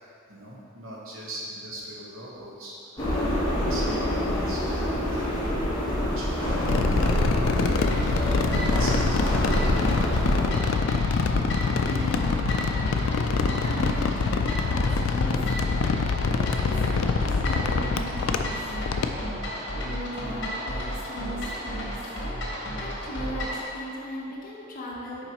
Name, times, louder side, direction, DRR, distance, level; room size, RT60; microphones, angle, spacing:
voice 1, 0.3-2.7 3.2-5.3 5.6-8.0 8.3-9.6 18.9-19.1, right 1 dB, 70° right, -5 dB, 1.2 m, -41 dB
sound 1, 3.0-10.5, equal, 20° left, 1.3 m, -26 dB
sound 2, 6.7-19.3, left 5 dB, 75° left, 0.3 m, -25 dB
sound 3, 7.8-23.7, equal, 60° left, 1.2 m, -33 dB
voice 2, 11.8-15.4 15.8-18.5 19.5-22.0 22.3-25.3, equal, 45° left, -4 dB, 0.9 m, -38 dB
7.1 x 4.8 x 3.0 m, 2.6 s
head